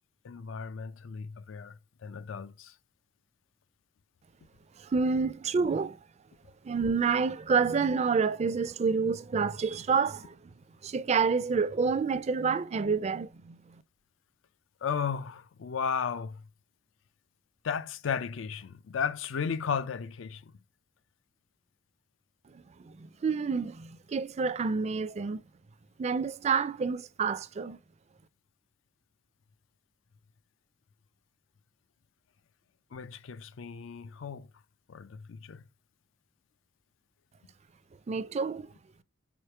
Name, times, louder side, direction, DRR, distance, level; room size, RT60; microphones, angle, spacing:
voice 1, 0.2-2.7 14.8-16.4 17.6-20.5 32.9-34.5 34.9-35.6, left 6 dB, 80° left, 0.4 m, -35 dB
voice 2, 4.8-6.0 6.6-10.4 10.8-13.6 22.5-25.4 26.0-27.8 38.1-38.7, right 5 dB, 35° right, 0.4 m, -28 dB
5.0 x 4.9 x 4.4 m
head